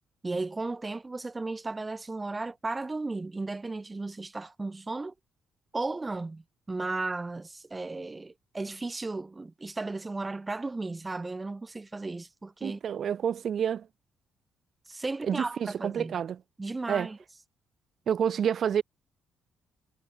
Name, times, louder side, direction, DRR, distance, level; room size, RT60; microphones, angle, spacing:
voice 1, 0.2-5.1 5.7-12.8 14.9-16.2 16.6-17.2, right 3 dB, 20° right, 4.0 m, -35 dB
voice 2, 12.6-13.9 15.2-16.4 16.9-17.1 18.1-18.8, right 8 dB, 60° right, 1.3 m, -28 dB
cardioid pair, 90°, 0 cm